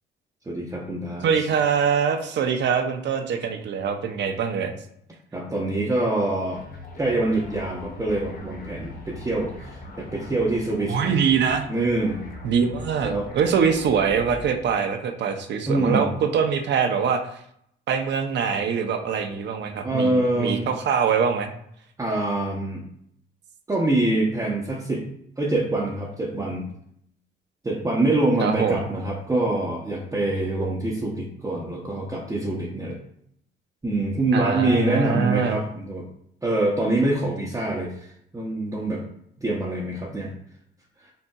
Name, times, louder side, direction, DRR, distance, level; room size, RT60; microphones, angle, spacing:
voice 1, 0.5-1.3 5.3-6.6 7.0-11.1 11.7-12.3 13.0-13.3 15.7-16.1 19.8-20.7 22.0-22.8 23.7-25.0 25.4-26.7 27.6-33.0 33.8-36.1 36.4-39.0 39.4-40.3 41.0-41.1, right 2 dB, 15° right, -4 dB, 0.7 m, -25 dB
voice 2, 1.2-4.7 10.9-11.7 12.4-17.4 17.9-21.5 28.4-28.9 34.3-35.6, right 6 dB, 65° right, 6 dB, 0.6 m, -23 dB
sound 1, 6.5-14.7, left 2 dB, 50° left, 0.8 m, -41 dB
5.3 x 2.7 x 2.3 m, 0.71 s
cardioid pair, 90°, 20 cm